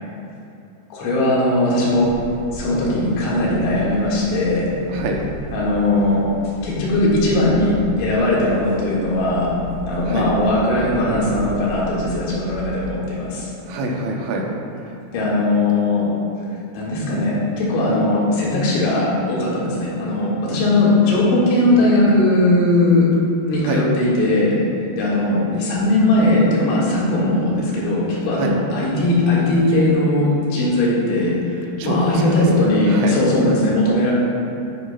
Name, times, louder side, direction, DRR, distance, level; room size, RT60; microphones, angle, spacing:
voice 1, 0.9-2.1 2.5-4.7 5.5-6.2 6.6-7.7 8.0-9.6 9.9-13.5 15.1-16.1 16.7-23.1 23.4-24.6 25.0-34.1, left 1 dB, 80° left, -6 dB, 4.2 m, -19 dB
sound 1, 1.8-12.9, equal, 50° left, 1.9 m, -35 dB
voice 2, 4.9-5.2 10.1-10.3 13.7-14.5 23.6-23.8 28.4-28.5 31.8-32.6 32.9-33.2, right 2 dB, 80° right, 0 dB, 3.2 m, -25 dB
11.0 x 9.9 x 2.3 m, 2.8 s
omnidirectional pair, 5.3 m